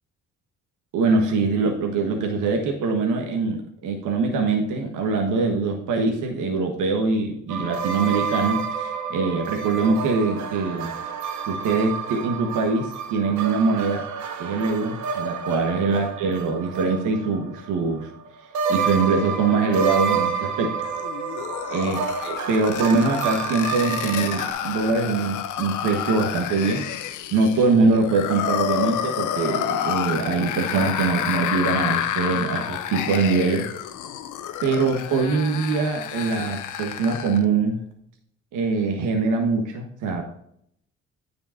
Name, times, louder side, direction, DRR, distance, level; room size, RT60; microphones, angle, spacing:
voice 1, 0.9-10.9 11.5-14.1 14.4-18.1 18.7-20.7 21.7-26.9 27.3-33.6 34.6-37.8 38.5-40.2, right 4 dB, 85° right, 2 dB, 1.4 m, -23 dB
sound 1, 7.5-18.3 18.5-24.5, right 6 dB, 70° right, 1.0 m, -29 dB
sound 2, 20.8-37.4, left 10 dB, 80° left, 0.8 m, -29 dB
9.6 x 5.2 x 4.4 m, 0.71 s
cardioid pair, 90°, 30 cm